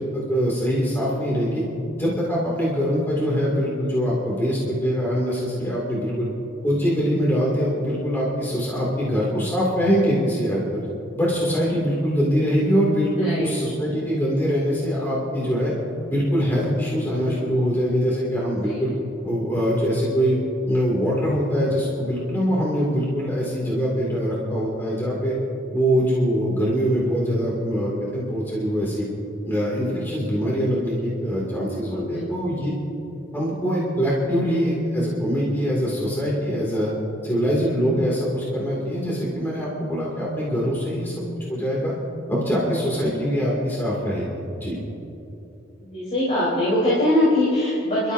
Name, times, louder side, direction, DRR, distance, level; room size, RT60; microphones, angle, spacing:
voice 1, 0.0-1.6 2.0-6.2 6.6-10.8 11.2-15.7 16.1-18.9 19.2-20.4 20.7-25.3 25.7-29.1 29.4-32.7 33.3-36.9 37.2-41.9 42.3-44.3 44.6-44.7, equal, 10° left, -6 dB, 2.3 m, -23 dB
voice 2, 13.2-13.6 18.6-19.0 31.7-32.3 45.8-48.1, left 1 dB, 35° left, -9 dB, 3.7 m, -23 dB
27.5 x 13.0 x 2.7 m, 2.9 s
head